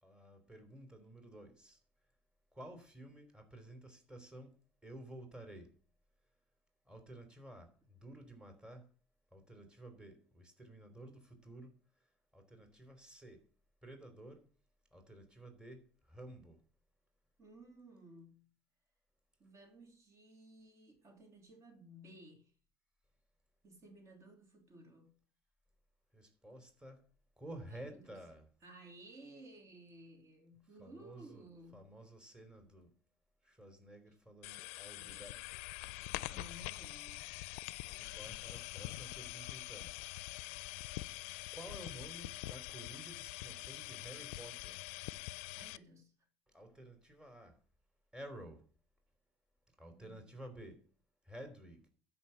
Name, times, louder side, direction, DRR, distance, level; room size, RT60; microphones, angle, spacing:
voice 1, 0.0-1.8 2.5-4.6 4.8-5.7 6.9-8.9 9.3-11.7 12.3-13.4 13.8-14.4 14.9-16.6 26.1-27.0 27.4-28.5 30.8-32.9 33.4-35.7 37.8-39.9 41.5-44.8 46.5-47.6 48.1-48.6 49.8-50.8 51.2-51.8, right 1 dB, 10° right, 3.3 m, -52 dB
voice 2, 17.4-18.5 19.4-22.5 23.6-25.2 27.7-28.2 28.6-31.9 36.3-37.3 45.5-46.1 49.9-50.2, right 1 dB, 45° right, 3.3 m, -56 dB
sound 1, 34.4-45.8, left 20 dB, 85° left, 0.4 m, -45 dB
12.5 x 5.6 x 8.0 m
supercardioid pair, 85°, 7 cm